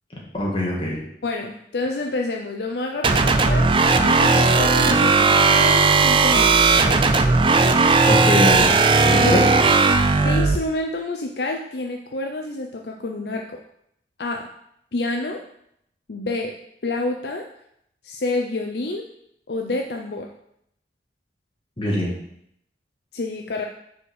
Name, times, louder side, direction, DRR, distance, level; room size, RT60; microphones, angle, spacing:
voice 1, 0.3-1.0 8.1-9.4 21.8-22.1, left 1 dB, 30° left, -3 dB, 1.8 m, -23 dB
voice 2, 1.2-7.0 9.2-9.6 10.2-13.6 14.2-14.5 14.9-15.4 16.1-16.6 16.8-17.5 18.0-19.1 19.5-20.3 23.1-23.6, left 2 dB, 60° left, 2 dB, 0.6 m, -28 dB
sound 1, 3.0-10.6, right 4 dB, 30° right, 0.4 m, -16 dB
5.2 x 4.9 x 6.3 m, 0.74 s
head